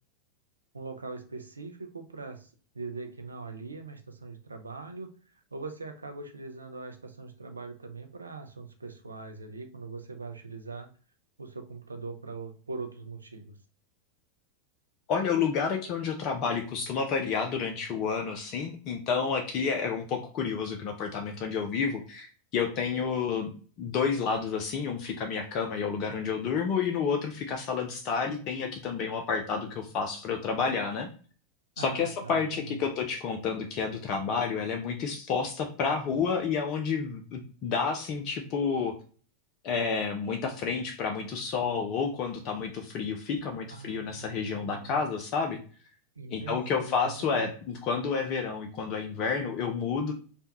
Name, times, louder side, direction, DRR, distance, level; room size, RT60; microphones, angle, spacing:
voice 1, 0.7-2.5 2.7-5.1 5.5-10.9 11.4-13.6 31.8-32.8 43.7-45.0 46.2-47.5, right 4 dB, 85° right, 5 dB, 0.5 m, -41 dB
voice 2, 15.1-22.3 22.5-23.5 23.8-31.1 31.8-39.0 39.6-45.6 46.3-50.1, left 5 dB, 45° left, 3 dB, 0.5 m, -30 dB
3.4 x 2.2 x 2.7 m, 0.40 s
figure-of-eight pair, 85°, 0 cm